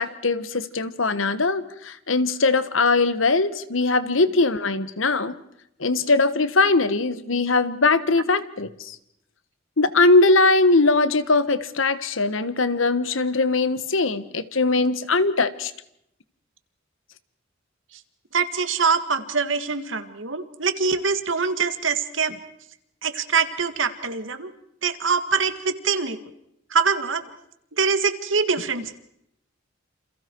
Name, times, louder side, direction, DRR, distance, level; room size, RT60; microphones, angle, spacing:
voice 1, 0.0-5.3 5.8-9.0 9.8-15.7, left 3 dB, 85° left, 14 dB, 1.4 m, -21 dB
voice 2, 18.3-22.4 23.0-24.5 24.8-26.2 26.7-27.2 27.8-29.0, right 5 dB, 70° right, 10 dB, 1.9 m, -24 dB
28.5 x 28.0 x 4.7 m, 0.77 s
head